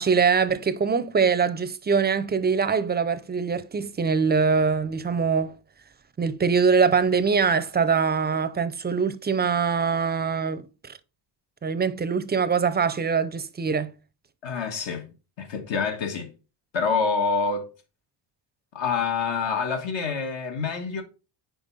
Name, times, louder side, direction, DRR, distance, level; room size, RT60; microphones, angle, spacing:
voice 1, 0.0-5.5 6.2-11.0 11.6-13.9, right 5 dB, 20° right, 0.4 m, -23 dB
voice 2, 14.4-15.1 15.4-16.3 16.7-17.7 18.7-21.0, left 5 dB, 70° left, 1.3 m, -26 dB
5.3 x 4.7 x 3.9 m
cardioid pair, 100°, 47 cm